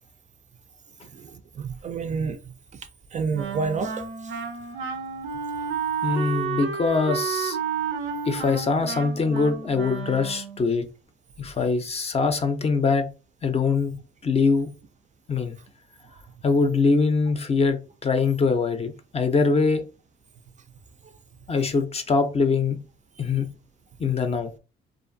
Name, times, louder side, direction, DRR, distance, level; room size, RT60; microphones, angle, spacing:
voice 1, 1.1-2.4 3.1-4.3, right 5 dB, 40° right, 0.4 m, -29 dB
Wind instrument woodwind instrument, 3.3-10.7, right 7 dB, 90° right, 0.5 m, -31 dB
voice 2, 6.0-7.6 8.3-10.8 11.4-13.1 13.4-13.9 14.2-14.7 15.3-15.6 16.4-19.8 21.5-22.8 23.2-23.5 24.0-24.5, left 4 dB, 30° left, 0.5 m, -23 dB
2.5 x 2.4 x 2.5 m
cardioid pair, 90°, 20 cm